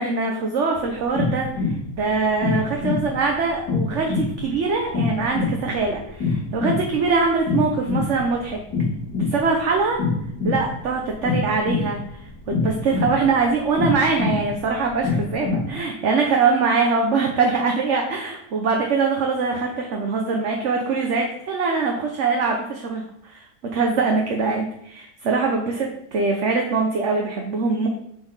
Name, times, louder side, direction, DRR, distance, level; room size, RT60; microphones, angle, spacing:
voice 1, 0.0-8.6 9.2-10.0 10.4-12.0 12.5-25.9 26.1-27.9, right 4 dB, 50° right, 1 dB, 1.2 m, -23 dB
sound 1, 0.8-15.7, left 4 dB, 80° left, 1.8 m, -26 dB
9.7 x 4.3 x 5.5 m, 0.74 s
omnidirectional pair, 1.7 m